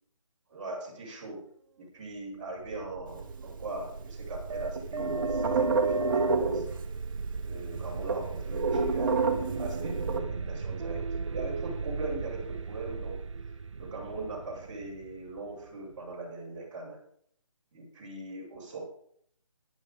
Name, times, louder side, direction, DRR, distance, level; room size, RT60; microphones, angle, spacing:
voice 1, 0.5-1.5 1.8-6.6 7.4-17.0 17.7-18.8, right 2 dB, 20° right, -7 dB, 6.0 m, -40 dB
sound 1, 2.4-16.1, right 4 dB, 65° right, 0.9 m, -36 dB
sound 2, 3.1-4.2 4.5-7.1 7.4-7.5 7.7-10.2, right 4 dB, 40° right, 1.9 m, -29 dB
14.0 x 11.5 x 3.8 m, 0.65 s
figure-of-eight pair, 160°, 17 cm